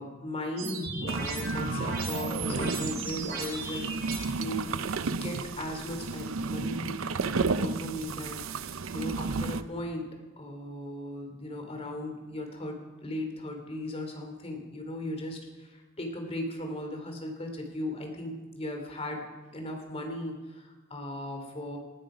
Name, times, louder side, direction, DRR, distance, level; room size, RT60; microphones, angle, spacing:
voice 1, 0.0-3.9 4.2-4.7 5.0-10.1 10.4-21.8, left 1 dB, 30° left, 3 dB, 3.1 m, -37 dB
sound 1, 0.6-4.2, right 2 dB, 50° right, 4.3 m, -35 dB
sound 2, 1.1-9.6, right 4 dB, 85° right, 0.7 m, -32 dB
19.0 x 13.0 x 5.1 m, 1.2 s
head